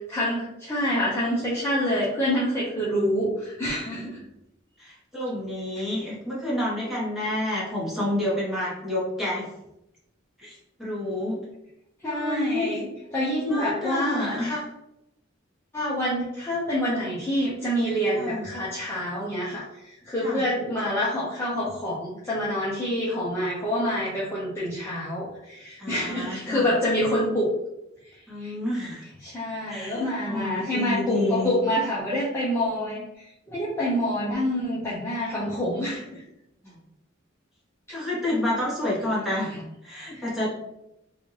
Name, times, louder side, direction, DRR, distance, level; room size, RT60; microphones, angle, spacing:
voice 1, 0.1-4.2 12.0-12.9 13.1-14.6 15.7-19.6 20.0-27.5 28.4-28.5 29.2-33.0 33.5-36.2 40.1-40.2, equal, 15° left, -9 dB, 0.7 m, -27 dB
voice 2, 4.8-9.5 10.4-11.4 12.0-12.8 13.4-14.6 18.2-18.4 20.2-20.4 25.8-26.7 28.3-29.0 29.7-31.5 36.6-36.8 37.9-40.5, left 1 dB, ahead, -8 dB, 1.3 m, -29 dB
3.2 x 2.6 x 3.1 m, 0.85 s
head